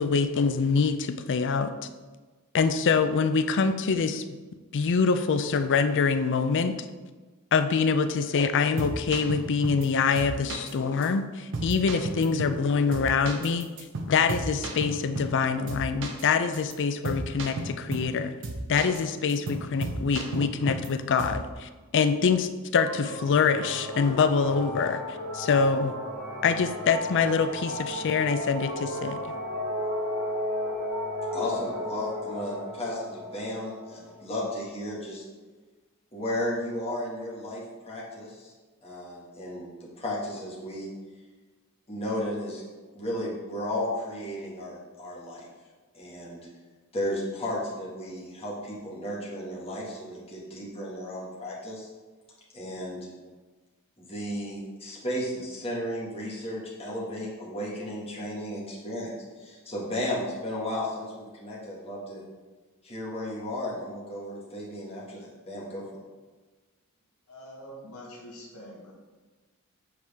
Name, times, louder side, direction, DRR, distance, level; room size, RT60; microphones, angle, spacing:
voice 1, 0.0-1.7 2.5-4.4 4.7-6.9 7.5-13.7 14.1-18.3 18.7-25.9 26.4-29.2, left 5 dB, 55° left, 10 dB, 0.4 m, -25 dB
sound 1, 8.6-9.9 10.2-10.7 11.0-11.1 11.5-12.6 12.9-15.4 15.7-16.2 16.5-16.7 17.0-18.1 18.4-19.0 19.3-20.9 21.2-21.5, right 2 dB, 60° right, 0.8 m, -34 dB
sound 2, 22.7-34.6, left 1 dB, 90° right, 2.0 m, -34 dB
voice 2, 31.3-35.2 36.1-38.5 38.8-40.9 41.9-42.6 42.9-45.5 45.9-46.4 46.9-51.9 52.5-53.1 54.0-59.1 59.4-62.2 62.8-65.8, left 1 dB, 25° left, -6 dB, 1.9 m, -34 dB
voice 3, 67.3-68.9, equal, 75° left, -4 dB, 1.5 m, -45 dB
7.7 x 4.7 x 3.5 m, 1.3 s
head